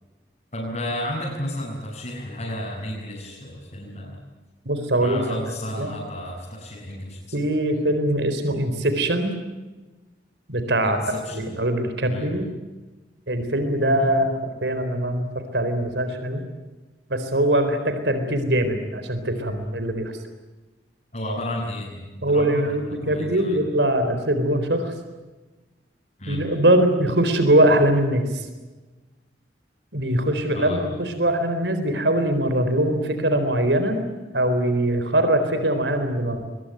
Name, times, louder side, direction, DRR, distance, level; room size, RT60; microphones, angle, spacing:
voice 1, 0.5-4.2 5.0-7.4 10.8-11.5 12.1-12.3 21.1-23.6 26.2-26.4 30.5-30.8, left 1 dB, 45° left, -5 dB, 7.1 m, -32 dB
voice 2, 4.7-5.4 5.8-5.9 7.3-9.3 10.5-12.5 13.3-16.4 17.1-20.1 22.2-24.9 26.3-28.5 29.9-34.0 34.3-36.4, right 1 dB, 75° right, 8 dB, 4.1 m, -22 dB
23.5 x 21.5 x 9.3 m, 1.2 s
head